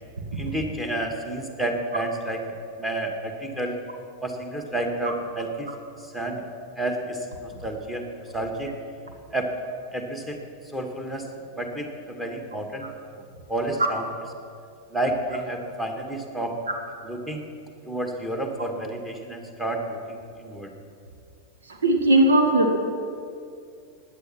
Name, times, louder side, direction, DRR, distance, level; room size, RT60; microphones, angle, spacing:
voice 1, 0.3-2.4 2.8-3.8 4.2-5.7 6.1-6.4 6.8-8.0 8.3-8.7 9.3-9.5 9.9-10.4 10.7-11.3 11.6-12.9 13.5-14.1 14.9-16.5 17.0-17.5 17.9-20.7, right 1 dB, 5° right, 2 dB, 1.9 m, -30 dB
voice 2, 21.7-22.7, right 1 dB, 70° right, 3 dB, 1.8 m, -19 dB
16.0 x 10.0 x 6.0 m, 2.4 s
figure-of-eight pair, 90°, 0 cm